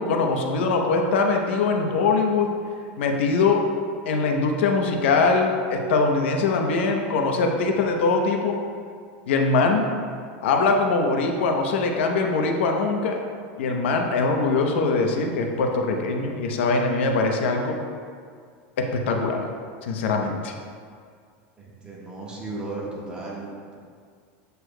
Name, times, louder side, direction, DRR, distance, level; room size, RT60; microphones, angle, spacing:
voice 1, 0.0-2.5 3.0-3.6 4.1-8.6 9.3-9.9 10.4-13.2 13.6-17.8 18.8-19.5 19.8-20.5, left 3 dB, 90° left, 3 dB, 0.8 m, -22 dB
voice 2, 21.6-23.8, right 2 dB, 15° right, -4 dB, 1.3 m, -35 dB
8.0 x 6.7 x 2.2 m, 2.1 s
supercardioid pair, 150°, 6 cm